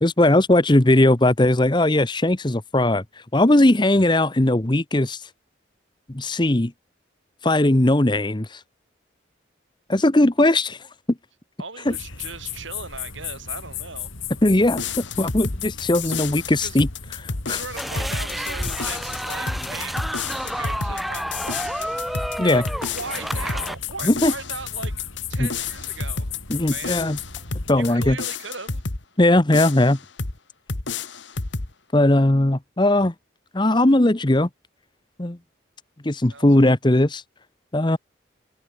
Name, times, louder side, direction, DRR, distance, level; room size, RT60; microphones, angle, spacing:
voice 1, 0.0-3.0 3.3-5.2 6.1-6.7 7.4-8.6 9.9-10.8 11.9-12.0 14.4-16.9 17.2-17.6 22.4-22.6 24.0-24.3 25.4-25.5 26.5-27.2 27.7-28.2 29.2-30.0 31.9-33.1 33.5-34.5 35.2-35.4 36.0-37.2 37.7-38.0, left 1 dB, 25° left, 0.9 m, -19 dB
voice 2, 11.6-14.1 16.0-16.2 16.6-16.8 17.5-22.0 22.4-24.9 25.3-26.3 26.7-27.0 27.7-28.8 36.3-36.7, right 4 dB, 70° right, 5.7 m, -38 dB
sound 1, 11.9-27.9, left 8 dB, 80° left, 5.3 m, -37 dB
sound 2, 14.7-29.0 29.5-30.4 30.7-31.7, left 4 dB, 65° left, 1.7 m, -31 dB
sound 3, 17.8-23.8, equal, ahead, 0.5 m, -30 dB
open air
head